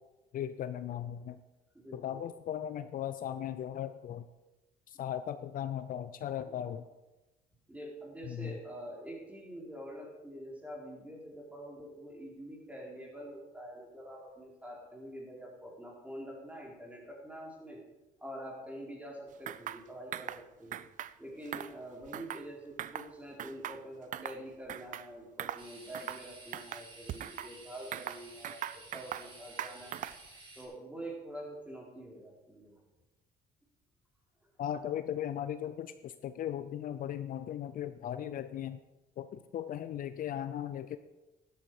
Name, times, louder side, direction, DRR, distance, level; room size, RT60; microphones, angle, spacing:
voice 1, 0.3-1.4 1.9-4.2 4.9-6.8 8.3-8.5 34.6-38.8 39.2-41.0, left 10 dB, 55° left, 11 dB, 0.6 m, -37 dB
voice 2, 1.7-2.2 6.4-6.6 7.7-17.8 18.2-20.8 21.2-30.1 30.6-32.8, right 1 dB, 10° right, -2 dB, 4.0 m, -46 dB
sound 1, 19.5-19.8 20.1-20.4 20.7-21.1 21.5-22.5 22.8-23.1 23.4-24.4 24.7-25.1 25.4-25.6 25.9-26.2 26.5-27.5 27.9-29.3 29.6-30.3, right 11 dB, 50° right, 0.5 m, -40 dB
sound 2, 25.6-30.6, right 2 dB, 30° right, 4.2 m, -53 dB
12.5 x 11.5 x 4.9 m, 1.0 s
cardioid pair, 110°, 17 cm